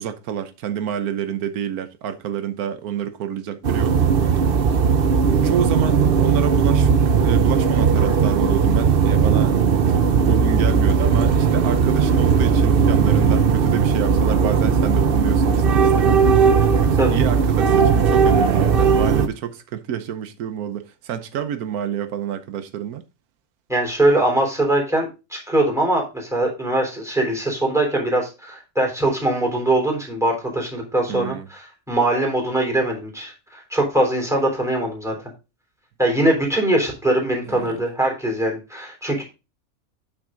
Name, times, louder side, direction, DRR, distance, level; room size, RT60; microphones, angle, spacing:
voice 1, 0.0-4.0 5.4-16.2 16.8-23.0 31.1-31.5 37.5-37.7, right 9 dB, 90° right, 1.3 m, -28 dB
sound 1, 3.6-19.3, right 6 dB, 50° right, 0.8 m, -17 dB
voice 2, 23.7-35.1 36.0-39.2, right 1 dB, ahead, 3.4 m, -22 dB
8.7 x 6.1 x 3.7 m
omnidirectional pair, 1.5 m